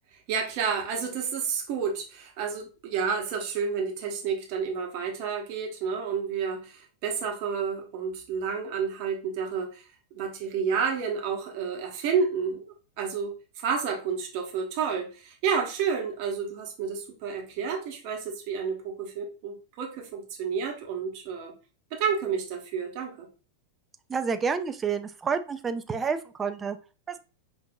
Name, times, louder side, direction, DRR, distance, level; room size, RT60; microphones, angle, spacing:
voice 1, 0.3-9.9 10.1-21.5 21.9-23.3, right 6 dB, 45° right, 1 dB, 0.9 m, -30 dB
voice 2, 24.1-26.8 27.1-27.2, right 5 dB, 20° right, 9 dB, 0.3 m, -29 dB
5.2 x 2.5 x 2.2 m, 0.34 s
figure-of-eight pair, 90°, 0 cm